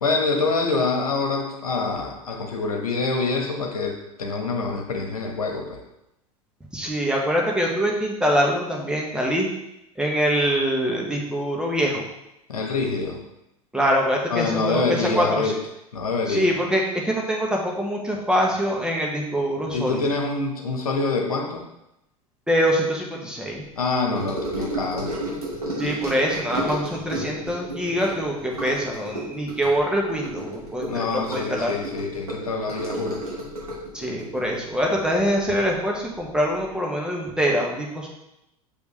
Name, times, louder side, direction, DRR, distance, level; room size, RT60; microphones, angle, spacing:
voice 1, 0.0-5.8 12.5-13.2 14.3-15.6 15.9-16.5 19.7-21.6 23.8-25.2 30.8-33.2, left 3 dB, 75° left, 2 dB, 1.2 m, -26 dB
voice 2, 6.7-9.5 10.0-12.0 13.7-15.5 16.3-20.1 22.5-23.6 25.8-31.7 33.9-38.1, equal, 5° right, -1 dB, 1.4 m, -24 dB
Gurgling / Sink (filling or washing) / Trickle dribble, 24.1-35.8 36.0-36.4 36.6-36.7, right 1 dB, 85° right, 2.3 m, -32 dB
6.7 x 5.2 x 3.2 m, 0.86 s
figure-of-eight pair, 85°, 19 cm